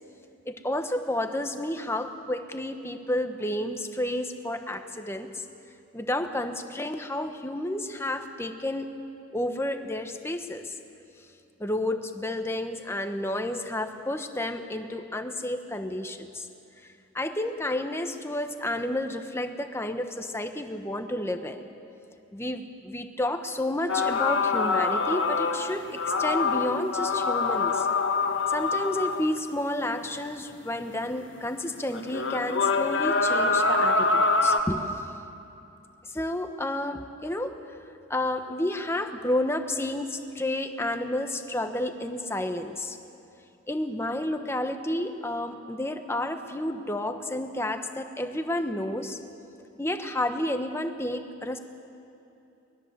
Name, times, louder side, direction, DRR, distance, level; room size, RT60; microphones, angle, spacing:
voice 1, 0.5-5.4 5.9-8.9 9.3-10.8 11.6-16.5 17.1-21.7 22.3-27.9 28.5-35.0 36.1-37.8 38.1-43.0 43.7-49.2 49.8-51.6, left 1 dB, 15° left, 6 dB, 1.2 m, -31 dB
sound 1, 23.9-29.4 31.1-31.2 31.9-34.6, left 3 dB, 75° left, 1.5 m, -25 dB
23.0 x 20.0 x 7.5 m, 2.7 s
head